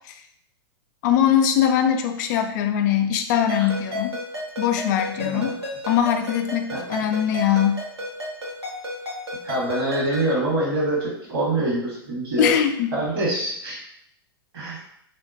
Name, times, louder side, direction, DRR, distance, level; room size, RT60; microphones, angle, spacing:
voice 1, 1.0-4.2 4.6-5.5 5.9-7.8 12.4-12.9, left 9 dB, 45° left, 6 dB, 0.3 m, -21 dB
Ringtone, 3.5-10.3, left 1 dB, 85° right, 1.0 m, -33 dB
voice 2, 5.2-5.5 6.7-6.8 9.4-12.5 12.9-13.8 14.5-14.8, right 1 dB, 65° right, -5 dB, 1.5 m, -25 dB
2.8 x 2.1 x 2.6 m, 0.72 s
figure-of-eight pair, 105°, 13 cm